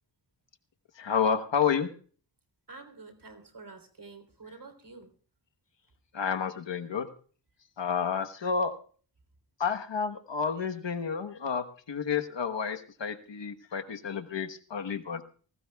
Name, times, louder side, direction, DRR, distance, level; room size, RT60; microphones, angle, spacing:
voice 1, 0.9-1.9 6.1-7.1 7.8-8.7 9.6-15.2, left 6 dB, 65° left, 7 dB, 1.3 m, -30 dB
voice 2, 2.7-5.1, right 3 dB, 55° right, 8 dB, 3.5 m, -48 dB
22.5 x 18.0 x 2.3 m, 0.42 s
cardioid pair, 55°, 47 cm